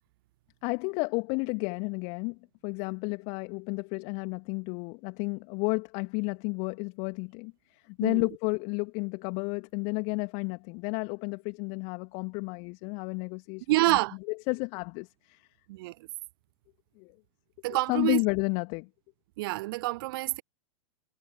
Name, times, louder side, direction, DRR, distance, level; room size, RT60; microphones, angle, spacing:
voice 1, 0.6-2.4 2.6-7.5 7.9-14.0 14.5-15.4 17.0-17.1 17.9-18.9, left 33 dB, 40° left, 2.4 m, -32 dB
voice 2, 13.7-14.2 15.7-15.9 17.6-18.2 19.4-20.4, right 20 dB, 45° right, 0.9 m, -27 dB
figure-of-eight pair, 100°, 16 cm